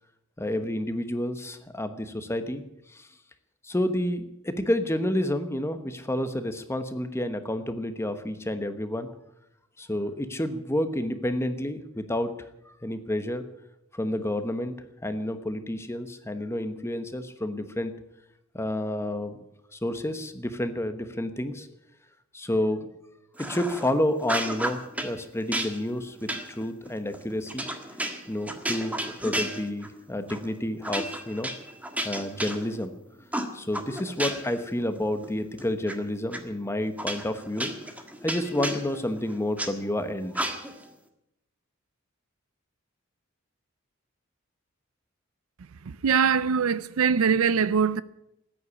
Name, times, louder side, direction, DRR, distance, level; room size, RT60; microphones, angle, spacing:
voice 1, 0.4-2.6 2.9-3.1 3.6-9.1 9.8-12.3 12.6-13.4 13.9-14.7 15.0-17.9 18.5-19.4 19.7-21.7 22.3-22.9 23.4-27.6 28.3-31.5 32.0-32.9 33.5-37.7 38.2-40.3, left 1 dB, 15° left, 1.1 m, -30 dB
sound 1, 23.4-23.9 24.2-25.1 25.5-30.0 30.3-30.5 30.8-32.9 33.3-34.6 35.0-35.9 36.3-36.4 37.0-39.7 40.3-40.9, right 1 dB, 5° right, 1.6 m, -32 dB
voice 2, 45.9-48.0, right 6 dB, 80° right, 0.5 m, -22 dB
14.5 x 9.9 x 9.9 m
head